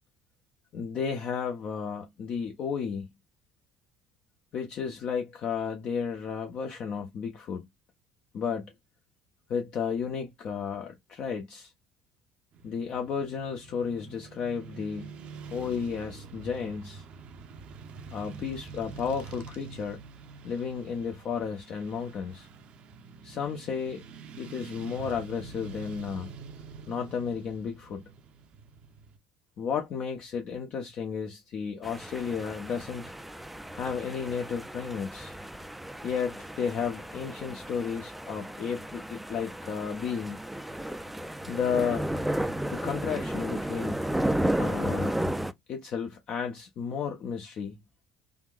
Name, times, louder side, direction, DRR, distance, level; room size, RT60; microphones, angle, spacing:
voice 1, 0.7-3.1 4.5-7.6 8.3-8.7 9.5-11.7 12.6-15.1 15.5-17.0 18.1-20.0 20.4-22.5 23.2-24.0 24.4-26.3 26.9-28.0 29.6-33.1 33.7-35.4 36.0-40.4 41.5-42.1 42.6-44.0 44.6-45.2 45.7-47.8, left 6 dB, 50° left, 0.7 m, -33 dB
Motorcycle / Traffic noise roadway noise, 12.5-29.2, right 5 dB, 50° right, 0.6 m, -46 dB
sound 1, 31.8-45.5, right 1 dB, 5° right, 0.4 m, -33 dB
3.5 x 2.5 x 2.3 m
figure-of-eight pair, 60°, 2 cm